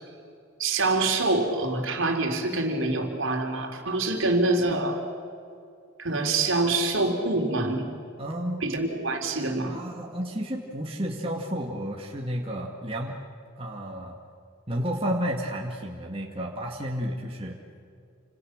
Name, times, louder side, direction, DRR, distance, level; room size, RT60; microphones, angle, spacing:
voice 1, 0.6-5.0 6.0-7.8 8.6-9.8, right 2 dB, 65° right, 3 dB, 3.7 m, -25 dB
voice 2, 8.2-8.7 9.7-13.2 13.6-14.2 14.7-17.6, equal, 25° right, -1 dB, 2.3 m, -31 dB
29.0 x 27.5 x 6.7 m, 2.3 s
head